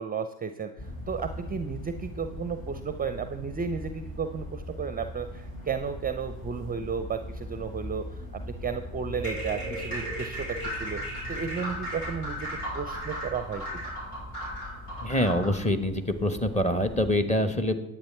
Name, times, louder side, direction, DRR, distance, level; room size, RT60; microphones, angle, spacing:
voice 1, 0.0-12.5 12.7-13.8, right 6 dB, 20° right, 9 dB, 0.6 m, -33 dB
sound 1, 0.8-17.2, left 1 dB, 40° left, 3.9 m, -41 dB
sound 2, 9.1-15.6, equal, 85° left, 4.7 m, -36 dB
voice 2, 15.0-17.8, left 1 dB, 15° left, 7 dB, 1.3 m, -25 dB
10.5 x 8.6 x 4.4 m, 0.89 s
hypercardioid pair, 65°, 45 cm